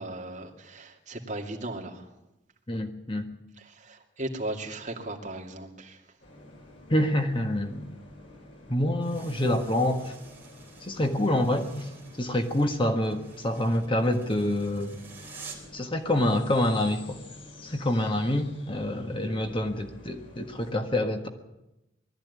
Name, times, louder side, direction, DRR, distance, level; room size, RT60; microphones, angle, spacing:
voice 1, 0.0-2.1 3.6-6.0, right 1 dB, 40° right, 1 dB, 2.6 m, -37 dB
voice 2, 2.7-3.3 6.9-7.9 8.7-10.1 10.8-11.9 12.2-14.9 15.7-17.2 17.6-21.3, left 1 dB, 30° left, 5 dB, 1.5 m, -27 dB
sound 1, 6.2-20.7, left 2 dB, 85° left, 5.1 m, -50 dB
sound 2, 9.0-15.8, right 4 dB, 10° right, 3.9 m, -50 dB
20.5 x 13.5 x 9.7 m, 0.94 s
head